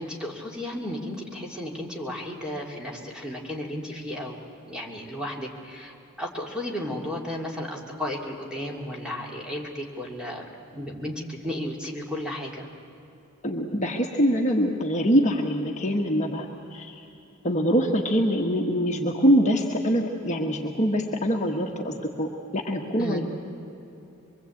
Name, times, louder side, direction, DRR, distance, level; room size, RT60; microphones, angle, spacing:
voice 1, 0.0-4.4 4.7-10.5 10.7-12.7 23.0-23.2, left 1 dB, 5° right, -2 dB, 2.6 m, -34 dB
voice 2, 13.4-17.0 17.4-23.2, equal, 35° left, 1 dB, 1.4 m, -24 dB
24.0 x 23.5 x 8.5 m, 2.8 s
head